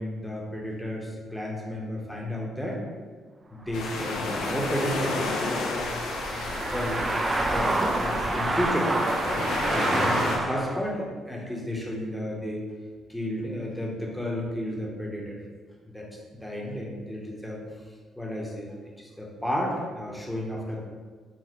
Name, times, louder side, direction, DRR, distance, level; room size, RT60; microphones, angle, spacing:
voice 1, 0.0-2.8 3.5-5.9 6.2-7.1 7.5-7.7 8.0-9.0 9.3-9.4 9.7-12.6 13.1-15.4 15.9-16.1 16.3-17.6 18.2-18.7 19.0-20.8, equal, ahead, -2 dB, 0.9 m, -32 dB
sound 1, 3.7-10.4, left 2 dB, 80° left, 0.6 m, -32 dB
sound 2, 3.7-10.8, right 2 dB, 25° right, 0.4 m, -28 dB
4.1 x 2.1 x 4.3 m, 1.5 s
cardioid pair, 90°, 0 cm